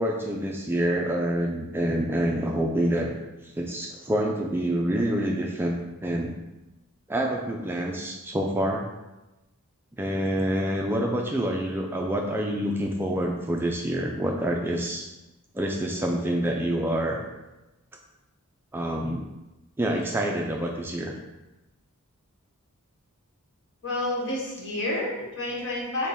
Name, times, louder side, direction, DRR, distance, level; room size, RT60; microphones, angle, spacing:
voice 1, 0.0-3.1 3.4-5.8 6.0-6.3 7.1-8.9 10.0-15.1 15.5-17.2 18.7-19.3 19.8-21.1, right 1 dB, 10° right, 0 dB, 0.3 m, -27 dB
voice 2, 23.8-26.1, left 1 dB, 55° left, -3 dB, 1.2 m, -29 dB
6.5 x 2.2 x 3.4 m, 1.0 s
head